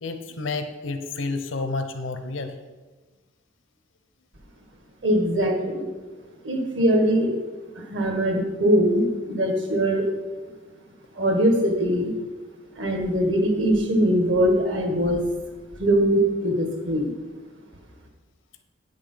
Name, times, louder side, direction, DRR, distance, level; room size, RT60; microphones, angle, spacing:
voice 1, 0.0-2.5, left 3 dB, 85° left, 8 dB, 0.8 m, -30 dB
voice 2, 5.0-5.8 6.4-7.3 7.9-10.1 11.2-12.1 12.8-15.2 15.8-17.1, equal, 70° right, 3 dB, 1.7 m, -21 dB
8.8 x 6.5 x 5.6 m, 1.3 s
head